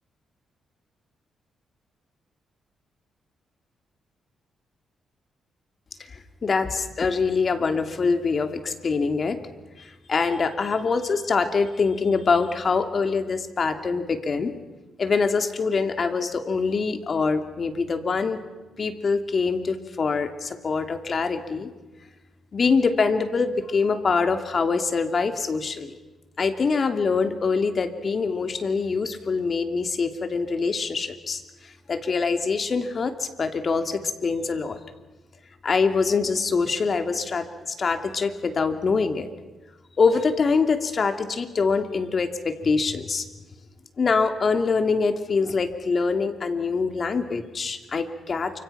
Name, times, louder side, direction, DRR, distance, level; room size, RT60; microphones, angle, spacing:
voice 1, 6.4-9.4 9.8-14.5 15.0-18.4 18.8-21.7 22.5-25.9 26.4-31.4 31.9-34.8 35.6-39.3 40.0-43.2 44.0-48.6, left 4 dB, 50° left, 7 dB, 2.7 m, -24 dB
28.5 x 26.0 x 5.9 m, 1.1 s
cardioid pair, 65°, 0 cm